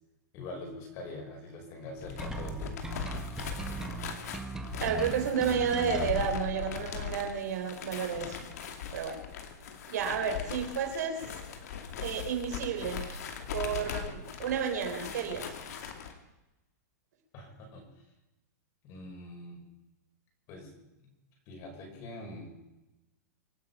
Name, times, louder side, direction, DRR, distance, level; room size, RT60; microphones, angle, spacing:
voice 1, 0.3-2.8 17.3-17.8 18.8-19.6 20.5-20.7 21.0-21.1 21.5-22.5, left 2 dB, 35° left, 1 dB, 5.6 m, -44 dB
sound 1, 1.9-16.1, left 7 dB, 65° left, 2.6 m, -40 dB
sound 2, 2.2-6.2, right 3 dB, 5° right, 1.0 m, -38 dB
voice 2, 4.8-8.5 8.9-9.2 9.9-11.2 12.0-13.2 13.5-15.6, right 7 dB, 70° right, 3 dB, 3.9 m, -31 dB
25.5 x 9.5 x 5.6 m, 0.98 s
supercardioid pair, 160°, 9 cm